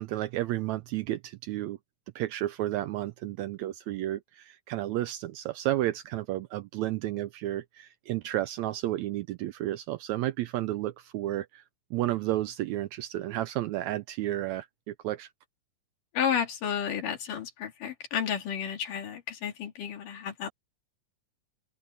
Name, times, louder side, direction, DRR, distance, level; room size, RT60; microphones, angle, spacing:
voice 1, 0.0-1.8 2.1-11.6 11.9-15.3, right 15 dB, 80° right, 1.7 m, -32 dB
voice 2, 16.1-20.5, left 8 dB, 80° left, 4.2 m, -32 dB
omnidirectional pair, 3.7 m